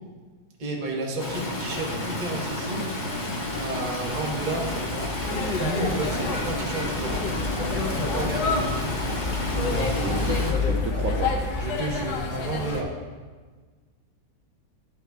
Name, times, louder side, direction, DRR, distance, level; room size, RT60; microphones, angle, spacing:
voice 1, 0.6-2.9 3.5-5.1 5.6-7.2 7.6-8.9 9.5-10.2 11.6-12.9, right 2 dB, 35° right, -2 dB, 0.9 m, -31 dB
Stream, 1.2-10.5, left 1 dB, 35° left, 0.9 m, -31 dB
sound 1, 3.4-11.6, left 4 dB, 65° left, 2.4 m, -32 dB
sound 2, 5.3-12.8, left 3 dB, 85° left, 1.4 m, -30 dB
voice 2, 9.9-10.4 10.6-11.3, right 4 dB, 70° right, 2 dB, 0.8 m, -31 dB
11.0 x 5.8 x 2.3 m, 1.4 s
omnidirectional pair, 1.9 m